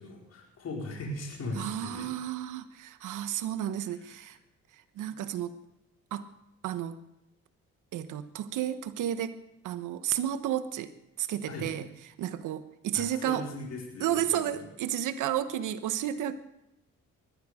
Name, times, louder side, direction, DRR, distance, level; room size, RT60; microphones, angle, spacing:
voice 1, 0.0-2.1 3.9-4.3 11.5-11.7 12.9-14.6, left 2 dB, 55° left, -2 dB, 4.7 m, -39 dB
voice 2, 1.5-4.4 5.0-5.6 6.1-6.3 6.6-7.0 7.9-9.4 9.6-10.9 11.2-11.8 12.2-13.4 14.0-16.3, right 11 dB, 85° right, 11 dB, 1.2 m, -32 dB
20.0 x 14.0 x 5.0 m, 0.87 s
cardioid pair, 90°, 30 cm